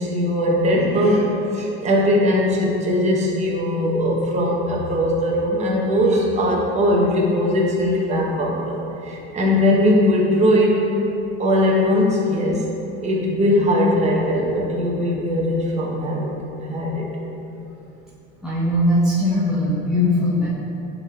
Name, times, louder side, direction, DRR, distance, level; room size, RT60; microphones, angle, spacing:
voice 1, 0.0-11.0 11.4-12.7 13.0-17.1, left 1 dB, 20° right, -2 dB, 1.1 m, -20 dB
voice 2, 18.4-20.5, left 1 dB, ahead, -8 dB, 0.7 m, -20 dB
10.5 x 3.8 x 3.4 m, 2.8 s
supercardioid pair, 140°, 34 cm